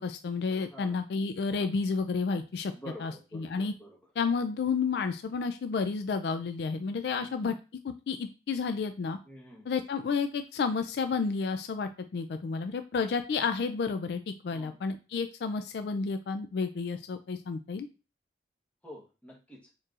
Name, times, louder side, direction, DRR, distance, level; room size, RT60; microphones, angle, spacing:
voice 1, 0.0-2.7 3.0-3.7 4.2-7.6 7.8-9.2 9.7-17.9, left 5 dB, 65° left, 8 dB, 0.3 m, -31 dB
voice 2, 2.7-4.0 7.1-7.4 9.3-9.7 14.5-14.8 18.8-19.6, equal, 10° left, -3 dB, 1.1 m, -48 dB
4.5 x 3.0 x 2.4 m, 0.32 s
head